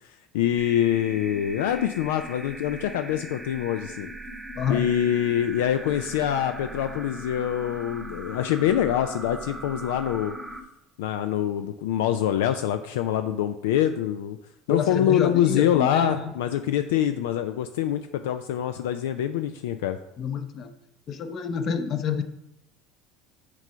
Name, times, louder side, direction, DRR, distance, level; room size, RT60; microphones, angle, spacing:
voice 1, 0.3-4.1 4.7-10.4 11.0-14.4 14.7-20.0, left 10 dB, 85° left, 9 dB, 0.3 m, -25 dB
sound 1, 0.6-10.6, right 1 dB, 10° right, 0.9 m, -39 dB
voice 2, 14.7-16.3 20.2-20.7 21.1-22.2, left 6 dB, 50° left, 8 dB, 0.8 m, -28 dB
5.9 x 3.9 x 5.6 m, 0.81 s
supercardioid pair, 90°, 0 cm